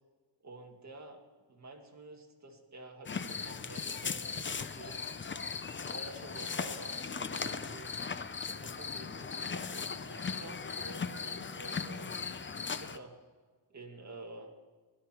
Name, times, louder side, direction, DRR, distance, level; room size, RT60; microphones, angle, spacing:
voice 1, 0.4-1.2 1.5-5.0 5.6-7.9 8.4-13.1 13.7-14.5, right 2 dB, 40° right, 2 dB, 2.1 m, -50 dB
sound 1, 3.1-13.0, left 5 dB, 25° left, 0.6 m, -38 dB
17.0 x 12.0 x 4.5 m, 1.4 s
wide cardioid pair, 135°, 44 cm